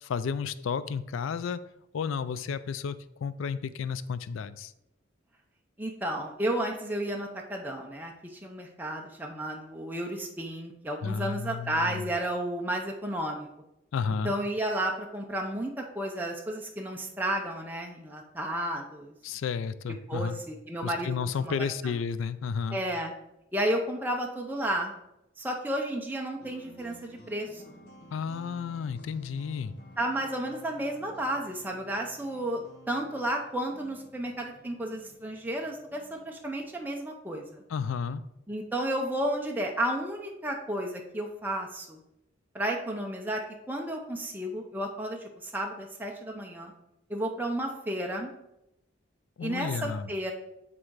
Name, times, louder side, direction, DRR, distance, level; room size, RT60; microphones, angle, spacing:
voice 1, 0.0-1.6 1.9-4.7 11.0-12.1 13.9-14.3 19.2-20.4 20.8-22.8 28.1-29.7 37.7-38.2 49.4-50.1, left 6 dB, 80° left, 15 dB, 0.4 m, -32 dB
voice 2, 5.8-13.5 14.2-19.1 20.1-21.5 21.8-21.9 22.7-23.1 23.5-24.9 25.4-27.8 30.0-32.6 32.9-37.6 38.5-42.0 42.5-43.4 43.7-45.2 45.4-46.7 47.1-48.3 49.4-50.3, right 1 dB, 10° right, 0 dB, 0.6 m, -32 dB
sound 1, 26.4-36.9, equal, 55° left, 1.3 m, -54 dB
8.5 x 3.7 x 4.7 m, 0.86 s
head